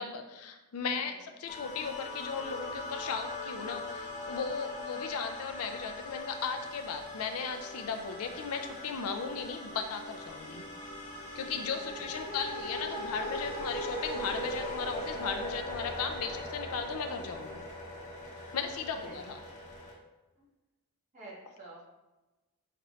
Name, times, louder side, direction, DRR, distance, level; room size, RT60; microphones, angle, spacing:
voice 1, 0.0-10.6 11.4-17.6 18.5-19.4, left 5 dB, 75° left, 6 dB, 0.5 m, -36 dB
sound 1, 1.5-19.9, left 1 dB, 35° left, 1.0 m, -40 dB
voice 2, 11.4-12.4 18.4-18.6 18.9-19.5 20.3-20.5 21.1-21.9, right 2 dB, 35° right, -7 dB, 1.5 m, -52 dB
5.9 x 2.9 x 3.0 m, 1.1 s
head